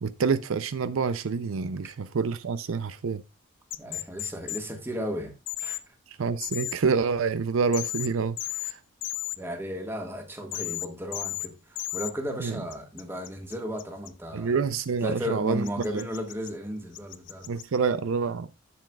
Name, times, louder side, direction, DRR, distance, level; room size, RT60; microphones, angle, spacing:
voice 1, 0.0-3.2 6.2-8.4 8.6-8.8 12.4-12.6 14.3-15.7 15.9-16.0 17.5-18.5, right 5 dB, 75° right, 0.5 m, -27 dB
sound 1, 3.7-4.6 5.5-5.8 6.4-6.7 7.7-8.1 8.4-8.7 9.0-9.4 10.5-10.9 11.1-11.5 11.8-12.1 12.7-14.1 15.6-16.5 16.9-17.6, left 15 dB, 60° left, 0.4 m, -33 dB
voice 2, 3.8-5.8 9.4-14.5 15.0-17.5, equal, 10° right, 1.6 m, -35 dB
11.0 x 7.0 x 2.3 m
head